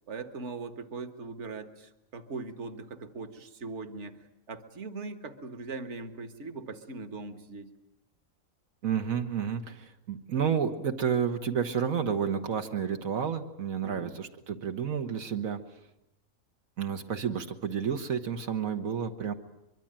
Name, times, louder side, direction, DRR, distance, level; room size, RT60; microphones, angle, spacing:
voice 1, 0.1-4.2 4.5-7.7 13.8-14.2, right 4 dB, 60° right, 9 dB, 1.8 m, -40 dB
voice 2, 8.8-15.6 16.8-19.3, right 7 dB, 85° right, 5 dB, 1.6 m, -30 dB
23.5 x 23.5 x 8.9 m, 0.87 s
omnidirectional pair, 1.4 m